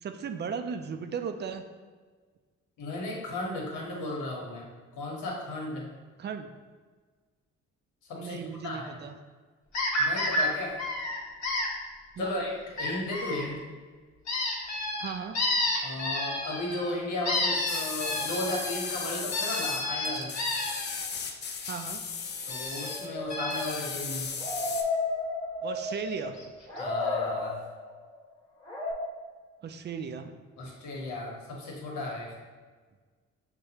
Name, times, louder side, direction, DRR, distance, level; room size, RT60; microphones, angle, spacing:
voice 1, 0.0-1.6 6.2-6.5 8.2-9.1 12.2-12.3 15.0-15.4 21.7-22.0 25.6-26.5 29.6-30.4, right 6 dB, 35° right, 7 dB, 0.4 m, -36 dB
voice 2, 2.8-5.9 8.0-8.9 10.0-10.8 12.2-13.6 15.8-20.4 22.5-24.3 26.8-27.6 30.6-32.3, left 2 dB, 85° left, -2 dB, 1.2 m, -35 dB
sound 1, 9.7-10.4 10.8-11.7 12.8-13.4 14.3-16.9 17.2-21.0 22.5-23.0 23.3-24.0 25.9-26.0 26.4-26.5 26.8-26.9, left 1 dB, 65° left, 1.1 m, -30 dB
sound 2, 17.7-23.1 23.5-24.8, left 5 dB, 35° left, 0.4 m, -36 dB
sound 3, 22.8-26.4 26.7-28.0 28.7-28.9, left 3 dB, 15° left, 1.3 m, -33 dB
6.4 x 2.2 x 2.8 m, 1.4 s
cardioid pair, 90°, 30 cm